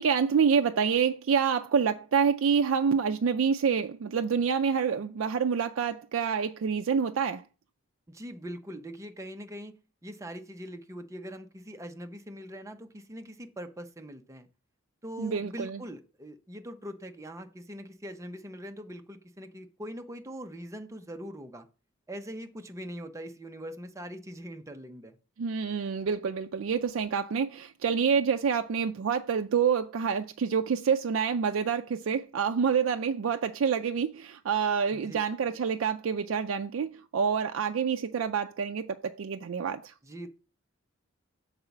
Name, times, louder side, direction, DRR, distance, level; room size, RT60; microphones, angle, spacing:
voice 1, 0.0-7.4 15.2-15.8 25.4-39.9, right 6 dB, 75° right, 0.4 m, -27 dB
voice 2, 8.1-9.7 10.0-14.5 15.0-21.7 22.1-25.2 34.9-35.2 40.0-40.3, equal, 15° right, 0.7 m, -42 dB
6.6 x 4.0 x 5.8 m
head